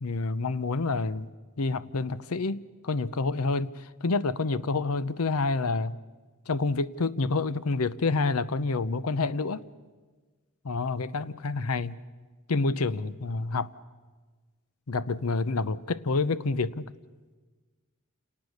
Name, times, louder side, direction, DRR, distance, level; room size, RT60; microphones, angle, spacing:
voice 1, 0.0-1.3 1.6-6.0 6.5-9.6 10.6-12.0 12.5-13.7 14.9-16.9, left 3 dB, 80° left, 16 dB, 0.7 m, -28 dB
28.5 x 19.0 x 6.5 m, 1.4 s
head